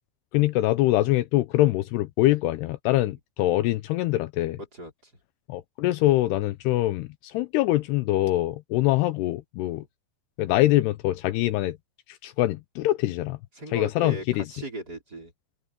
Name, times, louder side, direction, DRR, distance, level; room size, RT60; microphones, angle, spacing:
voice 1, 0.3-4.6 5.5-9.8 10.4-11.8 12.1-13.4 13.7-14.4, left 16 dB, 80° left, 2.6 m, -24 dB
voice 2, 4.6-5.1 9.7-9.9 13.6-15.3, right 1 dB, 20° right, 5.6 m, -38 dB
open air
omnidirectional pair, 5.1 m